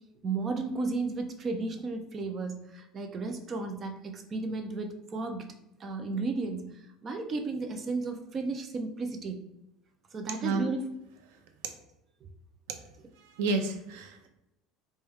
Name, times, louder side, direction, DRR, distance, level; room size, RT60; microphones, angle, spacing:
voice 1, 0.2-5.5 5.8-6.7 7.0-9.5 10.1-10.9, right 3 dB, 25° right, 5 dB, 0.3 m, -34 dB
voice 2, 10.4-10.7 13.4-14.3, right 3 dB, 90° right, 6 dB, 0.6 m, -30 dB
4.5 x 2.1 x 3.4 m, 0.90 s
cardioid pair, 175°, 0 cm